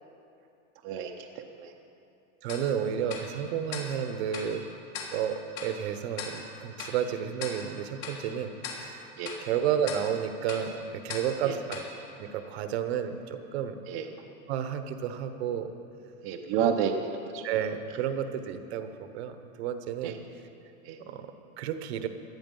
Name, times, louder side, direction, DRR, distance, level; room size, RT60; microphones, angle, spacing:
voice 1, 0.8-1.7 9.2-9.3 11.4-11.5 13.9-14.1 16.2-16.9 17.3-17.4 20.0-20.1 20.8-21.0, right 8 dB, 30° right, 1 dB, 0.7 m, -30 dB
voice 2, 2.4-4.6 5.1-9.1 9.4-11.8 12.2-13.8 14.5-15.7 16.6-16.7 17.4-20.2 21.1-22.1, right 9 dB, 50° right, 9 dB, 1.1 m, -31 dB
Tick-tock, 2.5-12.9, left 4 dB, 80° left, 3.4 m, -42 dB
17.5 x 12.0 x 5.4 m, 2.6 s
supercardioid pair, 165°, 41 cm